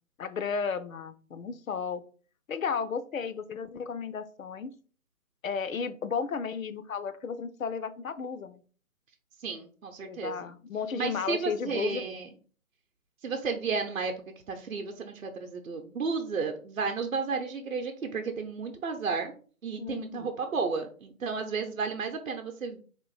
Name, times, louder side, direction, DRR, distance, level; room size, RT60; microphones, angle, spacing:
voice 1, 0.2-2.0 2.5-4.7 5.4-8.6 10.0-12.0 19.8-20.3, left 6 dB, 65° left, 12 dB, 0.6 m, -33 dB
voice 2, 9.4-10.3 11.0-12.3 13.2-14.1 14.5-19.3 19.6-22.8, right 5 dB, 65° right, 5 dB, 0.7 m, -32 dB
3.6 x 2.6 x 3.9 m, 0.41 s
figure-of-eight pair, 150°, 43 cm